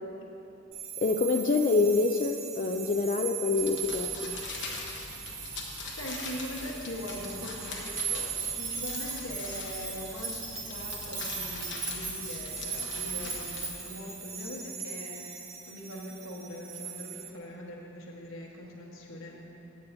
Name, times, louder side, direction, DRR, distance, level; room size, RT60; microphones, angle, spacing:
sound 1, 0.7-17.3, right 8 dB, 70° right, 0.9 m, -40 dB
voice 1, 1.0-4.3, left 3 dB, 40° left, 3 dB, 0.3 m, -26 dB
sound 2, 3.6-13.7, left 3 dB, 60° left, 1.1 m, -42 dB
voice 2, 5.9-15.3 15.6-19.5, equal, 80° left, -2 dB, 1.2 m, -41 dB
sound 3, 8.4-14.1, right 3 dB, 40° right, 2.0 m, -39 dB
16.0 x 8.3 x 2.7 m, 2.9 s
head